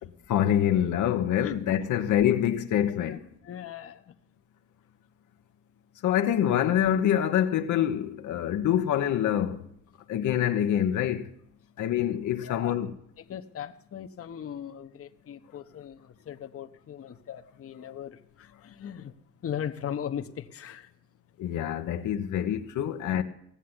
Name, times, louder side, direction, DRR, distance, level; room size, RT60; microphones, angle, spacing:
voice 1, 0.0-3.3 6.0-9.7 10.1-11.3 11.8-12.9 21.4-23.2, left 10 dB, 75° left, 1.0 m, -26 dB
voice 2, 3.4-4.0 12.4-12.7 13.2-19.1 19.4-20.9, left 9 dB, 50° left, 1.0 m, -38 dB
16.5 x 7.5 x 9.8 m
cardioid pair, 90°, 30 cm